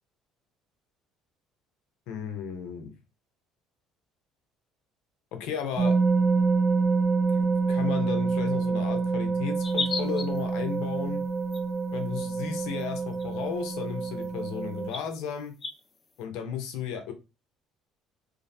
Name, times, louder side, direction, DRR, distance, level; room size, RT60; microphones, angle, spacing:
voice 1, 2.1-2.9 5.3-6.0 7.3-11.2 11.9-15.5 16.2-17.1, left 7 dB, 80° left, 6 dB, 0.6 m, -34 dB
sound 1, 5.8-14.9, right 4 dB, 35° right, 0.5 m, -27 dB
sound 2, 9.6-10.4 11.5-11.6 12.8-12.9 13.1-13.2 14.2-14.3 14.9-15.0 15.6-15.7, left 4 dB, 30° left, 0.5 m, -32 dB
2.6 x 2.0 x 2.6 m, 0.28 s
supercardioid pair, 90°, 0 cm